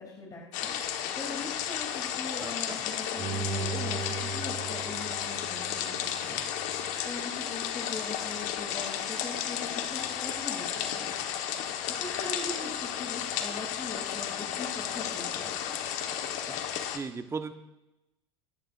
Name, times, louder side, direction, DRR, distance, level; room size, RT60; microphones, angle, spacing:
voice 1, 0.0-11.5 11.9-16.6, left 3 dB, 25° left, -1 dB, 3.0 m, -42 dB
sound 1, 0.5-17.0, left 9 dB, 60° left, 1.3 m, -33 dB
voice 2, 2.4-2.8 16.9-17.5, right 5 dB, 20° right, 8 dB, 1.1 m, -36 dB
Bowed string instrument, 3.2-6.3 6.7-6.8, right 4 dB, 45° right, 5.7 m, -37 dB
23.5 x 10.5 x 2.6 m, 0.96 s
hypercardioid pair, 80°, 14 cm